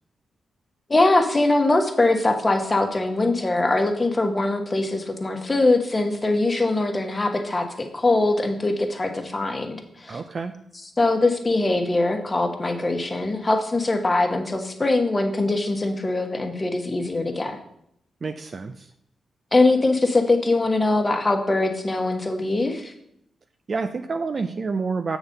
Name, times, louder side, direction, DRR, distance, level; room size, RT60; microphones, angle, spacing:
voice 1, 0.9-10.2 11.0-17.6 19.5-22.9, left 2 dB, 30° left, 4 dB, 1.2 m, -22 dB
voice 2, 10.1-10.5 18.2-18.9 23.7-25.2, right 4 dB, 50° right, 7 dB, 0.4 m, -28 dB
7.0 x 4.1 x 6.5 m, 0.75 s
cardioid pair, 60°, 0 cm